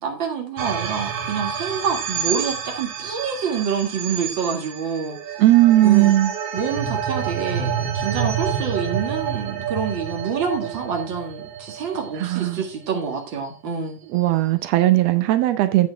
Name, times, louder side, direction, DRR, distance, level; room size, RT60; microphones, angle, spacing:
voice 1, 0.0-5.2 5.8-6.1 6.5-14.0, right 6 dB, 40° right, 2.2 m, -27 dB
sound 1, 0.6-13.0, right 8 dB, 60° right, 1.8 m, -29 dB
voice 2, 5.4-6.3 12.2-12.6 14.1-15.9, right 15 dB, 85° right, 1.4 m, -17 dB
8.5 x 8.1 x 3.4 m
omnidirectional pair, 3.9 m